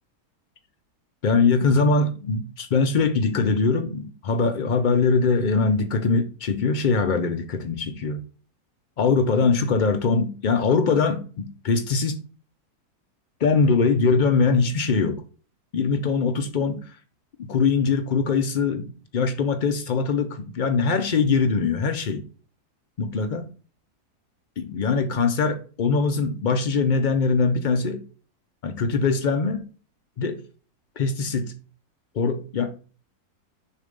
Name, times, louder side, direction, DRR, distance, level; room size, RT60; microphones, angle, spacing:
voice 1, 1.2-8.2 9.0-12.2 13.4-15.2 15.7-16.9 17.4-22.2 23.0-23.4 24.6-28.0 28.6-29.7 30.2-30.4 31.0-31.5 32.1-32.7, left 4 dB, 90° left, 0.4 m, -22 dB
6.7 x 2.7 x 5.1 m
omnidirectional pair, 1.7 m